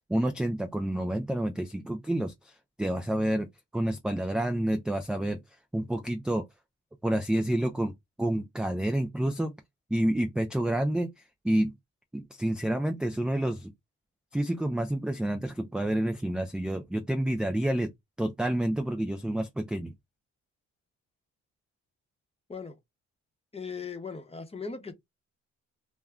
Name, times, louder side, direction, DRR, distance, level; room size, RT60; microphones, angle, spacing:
voice 1, 0.1-3.5 3.7-5.4 5.7-6.5 7.0-7.9 8.2-9.5 9.9-11.1 11.4-11.7 12.1-13.7 14.3-17.9 18.2-19.9, right 1 dB, 5° right, 0.3 m, -29 dB
voice 2, 23.5-24.9, left 5 dB, 20° left, 0.8 m, -38 dB
2.2 x 2.1 x 3.5 m
cardioid pair, 90°, 30 cm